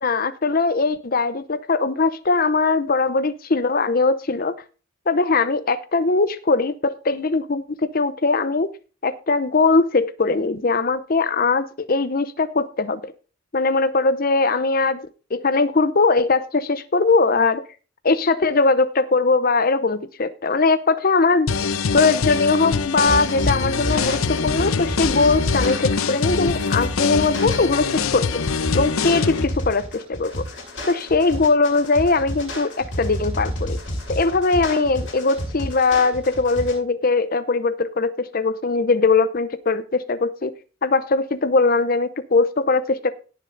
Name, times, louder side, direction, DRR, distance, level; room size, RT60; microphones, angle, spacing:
voice 1, 0.0-4.6 5.1-8.7 9.0-13.1 13.5-17.6 18.0-21.5 21.9-28.4 28.7-30.4 30.9-33.8 34.1-40.5 40.8-43.1, left 3 dB, 45° left, 12 dB, 0.7 m, -20 dB
sound 1, 21.5-29.4, left 5 dB, 85° left, 0.7 m, -24 dB
sound 2, 23.1-36.7, equal, 60° left, 7.2 m, -30 dB
17.5 x 6.6 x 3.9 m, 0.35 s
head